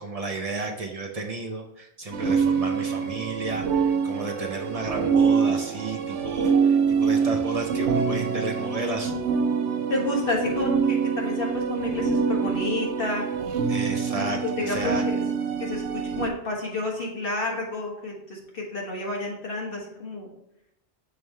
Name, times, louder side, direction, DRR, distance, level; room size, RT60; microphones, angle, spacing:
voice 1, 0.0-9.1 13.7-15.1, right 3 dB, 40° right, 2 dB, 0.6 m, -32 dB
sound 1, 2.1-16.3, right 6 dB, 75° right, 0.9 m, -25 dB
voice 2, 9.9-13.3 13.8-15.2 15.6-20.3, left 2 dB, 50° left, -2 dB, 1.7 m, -30 dB
6.8 x 3.4 x 4.3 m, 0.82 s
omnidirectional pair, 1.2 m